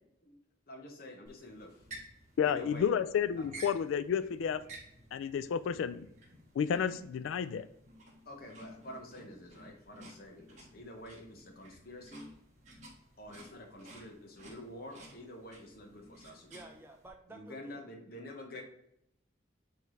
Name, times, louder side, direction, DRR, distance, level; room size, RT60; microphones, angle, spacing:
voice 1, 0.7-1.9 2.4-2.9 3.4-3.5 8.2-12.3 13.2-16.6 17.3-18.6, left 1 dB, 50° left, 2 dB, 1.3 m, -48 dB
sound 1, 1.3-17.1, right 1 dB, 35° right, 2.1 m, -54 dB
voice 2, 2.4-4.6 5.1-6.1 6.5-7.7, left 7 dB, 90° left, 14 dB, 0.3 m, -31 dB
voice 3, 16.5-17.8 18.5-18.6, right 2 dB, 10° right, 2 dB, 0.7 m, -52 dB
8.8 x 3.5 x 3.2 m, 0.79 s
head